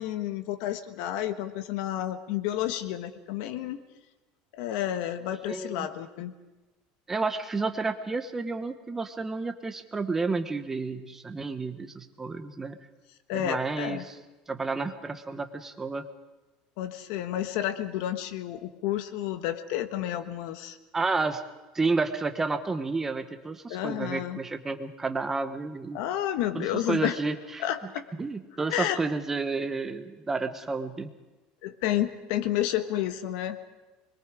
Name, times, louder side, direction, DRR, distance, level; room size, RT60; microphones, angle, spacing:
voice 1, 0.0-3.8 4.5-6.3 13.3-14.0 16.8-20.8 23.7-24.4 25.9-27.2 27.6-28.0 28.7-29.0 31.6-33.6, left 12 dB, 70° left, 9 dB, 1.4 m, -30 dB
voice 2, 5.5-5.9 7.1-12.8 13.3-14.2 14.5-16.0 20.9-21.4 21.7-26.0 26.5-27.6 28.2-31.1, right 3 dB, 10° right, 8 dB, 1.1 m, -31 dB
24.5 x 22.0 x 5.0 m, 1.1 s
cardioid pair, 160°, 3 cm